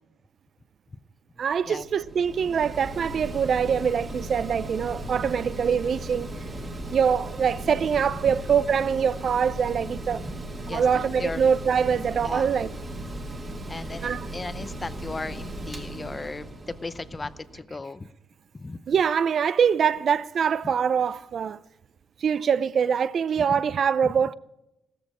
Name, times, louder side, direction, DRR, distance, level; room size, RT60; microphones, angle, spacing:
Mechanical fan, 1.3-17.6, right 1 dB, 25° right, 1.9 m, -37 dB
voice 1, 1.4-6.3 6.9-10.3 10.7-12.7 14.0-14.3 18.9-21.6 22.2-24.3, right 7 dB, 40° right, 0.5 m, -24 dB
sound 1, 3.5-10.2, left 4 dB, 85° left, 4.0 m, -55 dB
voice 2, 13.7-18.1 18.5-18.8 24.0-24.1, left 3 dB, 15° left, 0.6 m, -36 dB
17.0 x 13.5 x 4.9 m
cardioid pair, 165°, 0 cm